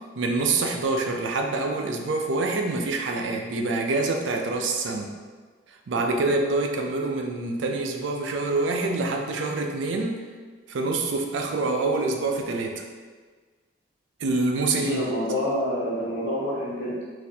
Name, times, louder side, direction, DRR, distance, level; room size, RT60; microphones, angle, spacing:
voice 1, 0.2-5.1 5.9-10.2 10.7-12.8 14.2-15.0, right 3 dB, 85° right, 3 dB, 0.4 m, -26 dB
voice 2, 14.7-17.0, equal, 80° left, -8 dB, 1.3 m, -27 dB
3.9 x 2.5 x 2.7 m, 1.5 s
head